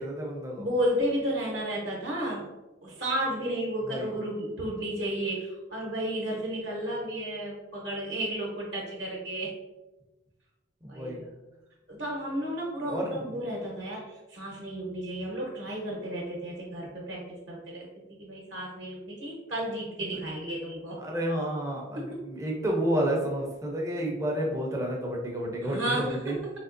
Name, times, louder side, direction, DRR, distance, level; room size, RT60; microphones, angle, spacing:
voice 1, 0.0-0.6 3.8-4.1 10.8-11.2 12.9-13.4 21.0-26.4, right 1 dB, 15° right, -1 dB, 0.5 m, -30 dB
voice 2, 0.6-2.5 2.8-9.5 10.9-11.3 11.9-17.8 18.2-21.0 21.9-22.0 25.6-26.3, right 1 dB, 60° right, -3 dB, 0.8 m, -32 dB
3.6 x 2.8 x 2.5 m, 1.1 s
head